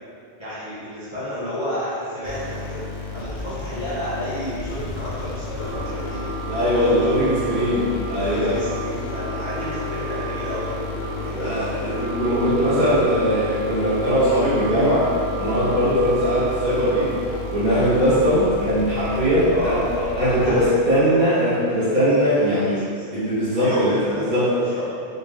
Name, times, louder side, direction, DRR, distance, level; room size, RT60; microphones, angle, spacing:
voice 1, 0.4-7.1 8.2-10.8 11.2-11.5 19.4-21.2 22.5-23.0 23.5-24.8, equal, 25° left, -13 dB, 0.9 m, -31 dB
sound 1, 2.2-21.0, left 4 dB, 85° left, 1.0 m, -34 dB
sound 2, 5.5-17.4, right 1 dB, 60° right, 1.6 m, -32 dB
voice 2, 6.5-8.6 11.3-15.1 15.4-17.1 17.5-19.8 20.2-22.8 23.1-24.0 24.3-24.5, equal, 40° right, -12 dB, 1.2 m, -20 dB
3.9 x 2.6 x 3.1 m, 2.3 s
omnidirectional pair, 1.2 m